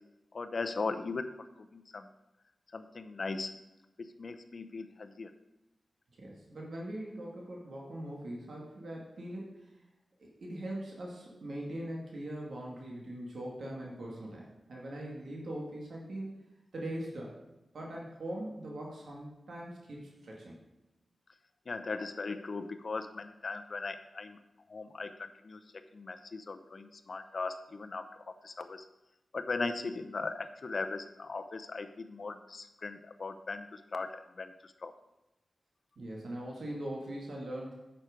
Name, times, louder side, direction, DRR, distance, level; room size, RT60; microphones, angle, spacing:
voice 1, 0.3-1.3 1.7-2.1 2.7-3.5 4.0-5.3 21.7-24.4 24.7-25.6 25.9-28.1 28.4-28.8 29.3-34.9, left 3 dB, 60° left, 9 dB, 0.7 m, -38 dB
voice 2, 6.2-9.7 10.2-16.3 16.7-17.4 17.7-20.6 36.0-37.7, right 1 dB, 80° right, -2 dB, 2.0 m, -41 dB
9.1 x 6.2 x 5.1 m, 0.98 s
wide cardioid pair, 75°, 0 cm